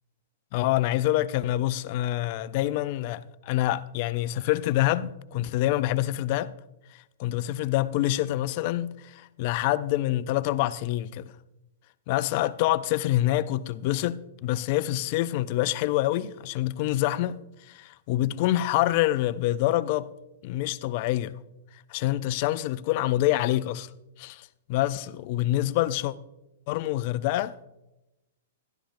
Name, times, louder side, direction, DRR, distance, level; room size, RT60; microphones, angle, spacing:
voice 1, 0.5-6.5 7.2-11.3 12.1-17.4 17.7-20.1 20.4-21.3 21.9-23.9 24.2-26.1 26.7-27.7, left 15 dB, 50° left, 0.4 m, -26 dB
12.5 x 11.5 x 2.5 m
hypercardioid pair, 115°, 0 cm